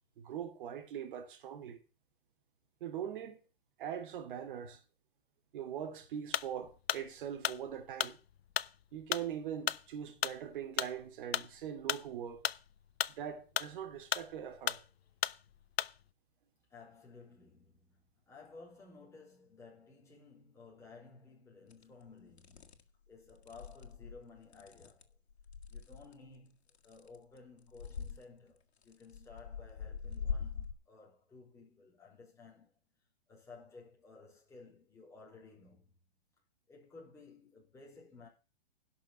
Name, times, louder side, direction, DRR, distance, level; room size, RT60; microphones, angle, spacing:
voice 1, 0.2-1.8 2.8-3.4 3.8-4.8 5.5-8.2 8.9-12.5 13.2-14.8, right 9 dB, 55° right, 2.8 m, -42 dB
sound 1, 6.3-16.1, left 10 dB, 75° left, 0.8 m, -36 dB
voice 2, 16.7-22.8 23.1-25.1 25.7-32.7 33.3-35.9 36.7-38.3, left 4 dB, 10° left, 4.6 m, -56 dB
sound 2, 21.7-21.8 22.4-22.8 23.3-26.1 26.7-27.4 27.7-28.2 28.8-30.7, left 6 dB, 90° left, 2.0 m, -42 dB
11.5 x 6.0 x 8.8 m
hypercardioid pair, 150°, 31 cm